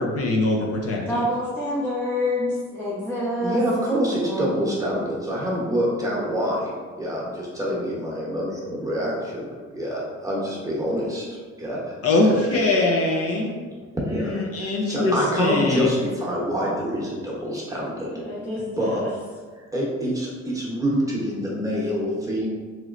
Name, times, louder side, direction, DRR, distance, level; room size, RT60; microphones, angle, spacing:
voice 1, 0.0-1.2 12.0-13.5 14.2-15.9, left 2 dB, 50° left, -1 dB, 0.6 m, -22 dB
voice 2, 1.1-3.6 4.2-4.7 18.1-19.1, left 1 dB, 5° left, -7 dB, 0.6 m, -27 dB
voice 3, 3.4-11.3 11.6-11.9 12.4-12.5 14.1-14.4 14.9-18.1 18.6-19.0 19.5-22.4, equal, 10° right, -5 dB, 0.9 m, -26 dB
3.0 x 3.0 x 2.5 m, 1.5 s
cardioid pair, 90°, 30 cm